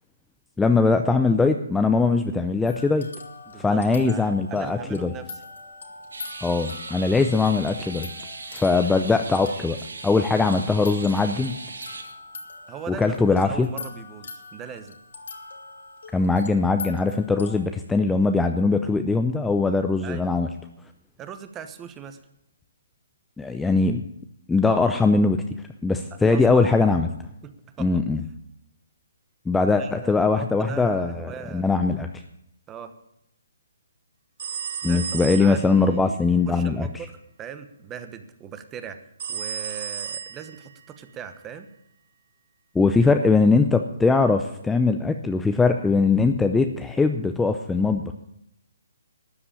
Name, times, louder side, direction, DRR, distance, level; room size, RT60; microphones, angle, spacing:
voice 1, 0.6-3.1 3.6-5.1 6.4-8.1 8.5-9.8 10.0-11.6 12.9-13.7 16.1-20.5 23.4-24.0 24.5-25.4 25.8-27.1 27.8-28.2 29.5-32.2 34.8-36.9 42.7-48.1, left 3 dB, 5° left, 6 dB, 0.5 m, -21 dB
sound 1, 2.6-17.6, left 4 dB, 75° left, 2.4 m, -43 dB
voice 2, 3.5-5.4 12.7-15.0 20.0-20.3 21.2-22.2 26.1-26.6 27.4-28.0 29.7-31.7 32.7-32.9 34.8-39.0 39.3-41.7, right 8 dB, 15° right, 10 dB, 1.0 m, -40 dB
sound 2, 6.1-12.0, right 3 dB, 85° right, 2.0 m, -39 dB
sound 3, 34.4-35.8 39.2-40.8, right 8 dB, 55° right, 0.4 m, -33 dB
13.0 x 7.9 x 8.7 m, 0.79 s
hypercardioid pair, 150°, 0 cm